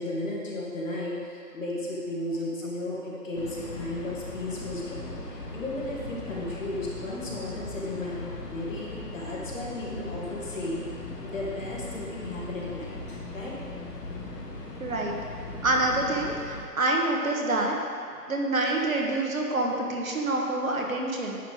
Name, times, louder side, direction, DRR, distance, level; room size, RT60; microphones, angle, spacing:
voice 1, 0.0-10.8 11.2-13.5, left 1 dB, 55° left, -5 dB, 2.1 m, -34 dB
sound 1, 3.3-16.6, left 2 dB, 85° left, 1.5 m, -39 dB
voice 2, 14.8-15.2 15.6-17.7 18.3-21.4, right 2 dB, 60° right, 0 dB, 1.3 m, -27 dB
10.0 x 6.5 x 3.5 m, 2.3 s
hypercardioid pair, 180°, 47 cm